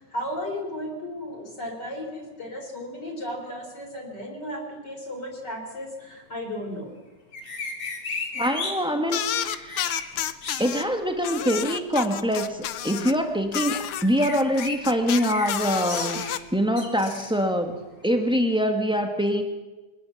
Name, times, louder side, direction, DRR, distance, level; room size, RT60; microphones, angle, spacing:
voice 1, 0.1-5.9 6.3-6.9, equal, 35° left, 2 dB, 4.5 m, -34 dB
sound 1, 7.3-8.7 9.4-10.0 10.4-10.7 14.0-14.8 15.1-15.5 15.8-16.4 16.8-17.3, left 3 dB, 55° left, 4.5 m, -34 dB
voice 2, 8.3-9.9 10.6-16.2 16.5-17.8 18.0-19.4, equal, 5° right, 4 dB, 0.3 m, -24 dB
sound 2, 9.1-10.8 11.2-13.2 13.5-16.4, left 11 dB, 75° left, 1.2 m, -30 dB
23.0 x 19.0 x 7.2 m, 1.1 s
omnidirectional pair, 3.4 m